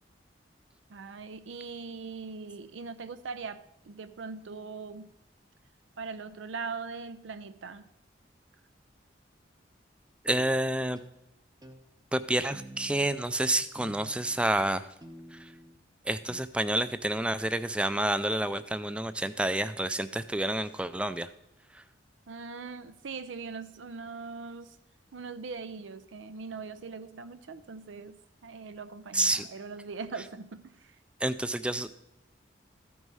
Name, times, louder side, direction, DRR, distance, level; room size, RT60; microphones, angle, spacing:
voice 1, 0.9-5.1 6.0-7.9 22.3-24.8 25.1-28.2 28.4-30.7, right 4 dB, 90° right, 0.5 m, -41 dB
voice 2, 10.2-11.0 12.1-14.8 16.1-21.3 29.1-29.5 31.2-31.9, right 1 dB, 5° right, 0.3 m, -29 dB
sound 1, 11.0-11.2 11.6-11.8 12.5-13.2 13.8-14.5 15.0-15.8 16.3-16.4, right 1 dB, 20° right, 0.7 m, -48 dB
14.0 x 4.7 x 5.5 m
head